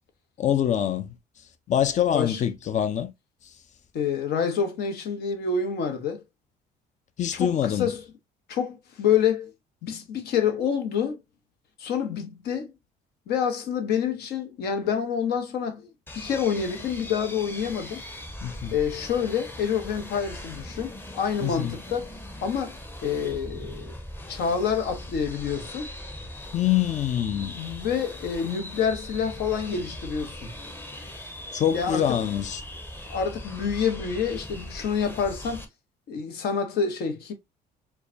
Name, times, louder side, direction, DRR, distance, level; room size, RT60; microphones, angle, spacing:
voice 1, 0.4-1.1 1.7-3.1 7.2-7.9 18.4-18.8 21.4-21.7 26.5-27.5 31.5-32.6, left 10 dB, 45° left, 0.6 m, -25 dB
voice 2, 3.9-6.2 7.3-8.0 8.5-9.5 9.8-11.2 11.8-12.7 13.3-18.0 18.7-22.8 23.0-23.9 24.3-25.9 27.3-30.6 31.7-32.0 33.1-35.6 36.1-37.3, left 7 dB, 70° left, 1.1 m, -27 dB
sound 1, 16.1-35.6, left 1 dB, 10° left, 0.8 m, -40 dB
4.7 x 2.3 x 2.6 m
cardioid pair, 110°, 17 cm